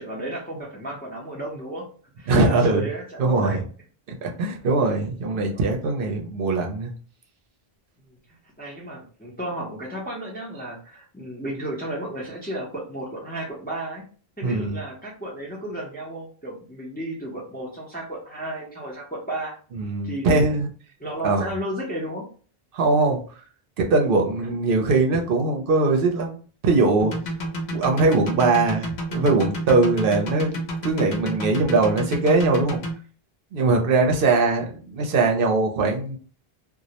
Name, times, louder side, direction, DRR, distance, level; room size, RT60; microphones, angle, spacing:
voice 1, 0.0-1.9 2.2-3.6 5.4-5.7 8.1-8.2 8.6-14.0 14.4-19.6 20.0-20.5 21.0-22.3, right 1 dB, 15° left, -3 dB, 0.4 m, -33 dB
voice 2, 2.3-2.9 3.2-3.6 4.1-6.9 14.4-14.8 19.7-20.7 21.2-21.5 22.7-23.2 23.8-26.4 26.6-27.1 27.7-32.8 33.5-36.2, right 3 dB, 65° right, 2 dB, 0.7 m, -21 dB
sound 1, 27.0-32.9, right 1 dB, 85° left, 0.9 m, -29 dB
2.3 x 2.0 x 2.7 m, 0.41 s
omnidirectional pair, 1.0 m